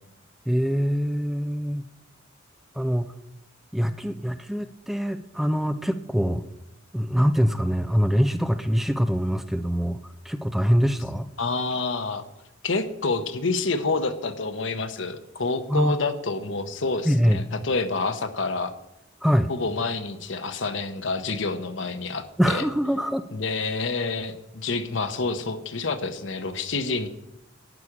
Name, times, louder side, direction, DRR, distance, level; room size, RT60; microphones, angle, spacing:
voice 1, 0.5-1.8 2.8-3.1 3.7-6.4 6.9-10.0 10.2-11.3 15.7-16.0 17.1-17.4 19.2-19.5 22.4-23.3, equal, ahead, 9 dB, 0.4 m, -24 dB
voice 2, 11.4-12.3 12.6-18.7 19.5-22.6 23.3-27.1, left 3 dB, 70° left, 9 dB, 0.9 m, -28 dB
11.0 x 8.7 x 4.9 m, 0.86 s
head